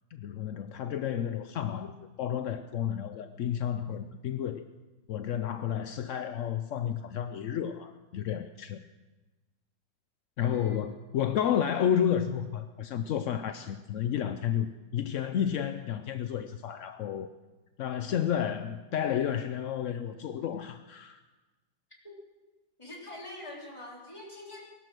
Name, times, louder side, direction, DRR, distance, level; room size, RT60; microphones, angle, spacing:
voice 1, 0.1-4.7 5.1-8.8 10.4-17.3 17.8-21.2, left 9 dB, 65° left, 9 dB, 0.8 m, -31 dB
voice 2, 10.5-10.9 22.8-24.6, left 1 dB, 15° left, -3 dB, 3.5 m, -44 dB
19.5 x 11.5 x 6.2 m, 1.2 s
omnidirectional pair, 1.9 m